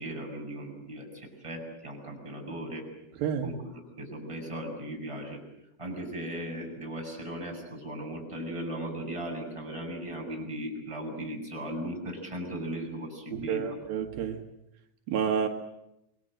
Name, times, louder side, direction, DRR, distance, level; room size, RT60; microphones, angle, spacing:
voice 1, 0.0-2.8 3.4-5.4 5.8-13.6, right 1 dB, 5° right, 0 dB, 6.8 m, -37 dB
voice 2, 3.2-3.5 13.3-14.4 15.1-15.5, right 7 dB, 75° right, 4 dB, 3.3 m, -29 dB
28.5 x 23.0 x 7.7 m, 0.83 s
omnidirectional pair, 4.3 m